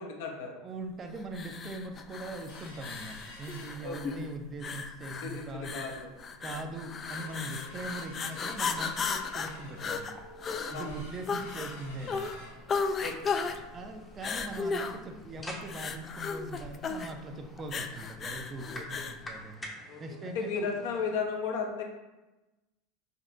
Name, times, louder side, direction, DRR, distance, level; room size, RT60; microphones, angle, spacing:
voice 1, 0.0-0.5 3.8-4.2 5.2-6.1 6.5-6.6 10.7-10.9 13.0-13.3 18.8-19.0 19.9-20.0 20.3-21.8, left 5 dB, 75° left, 1 dB, 0.8 m, -35 dB
voice 2, 0.6-5.8 6.4-10.2 10.7-12.2 13.7-19.6 20.0-20.7, right 2 dB, 30° right, 5 dB, 0.5 m, -41 dB
sound 1, 1.3-19.2, left 5 dB, 30° left, 0.3 m, -36 dB
sound 2, 2.5-4.4 4.8-4.9 5.2-5.5 6.0-6.1 6.5-17.0 17.3-17.4 17.8-18.0 18.5-18.6, left 1 dB, 90° left, 1.3 m, -51 dB
sound 3, 9.4-21.2, left 1 dB, 10° left, 0.7 m, -49 dB
5.1 x 2.8 x 2.6 m, 1.1 s
hypercardioid pair, 100°, 0 cm